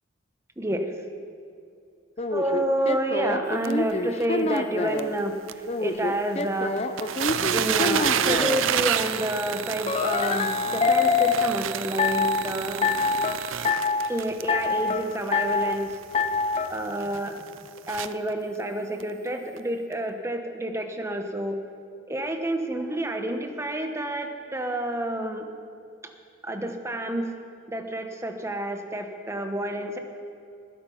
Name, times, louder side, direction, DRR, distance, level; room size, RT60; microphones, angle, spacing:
voice 1, 0.6-0.9 2.3-6.7 7.5-12.9 14.1-16.0 16.7-17.4 17.8-21.6 22.1-25.5 26.0-26.1 26.4-27.3 27.7-30.0, right 1 dB, 15° right, 5 dB, 1.0 m, -29 dB
sound 1, 2.2-5.1 5.7-8.6 9.9-11.5 12.0-12.5 12.8-13.3 13.6-14.1 14.5-15.0 15.3-15.8 16.1-16.7, left 4 dB, 30° left, 0.6 m, -25 dB
sound 2, 3.6-3.7 4.2-4.3 4.6-4.7 5.0-5.1 5.5-5.6 6.4-6.5 6.8-18.3 19.0-19.1 19.6-19.7, right 9 dB, 75° right, 0.5 m, -29 dB
19.5 x 9.1 x 5.6 m, 2.5 s
head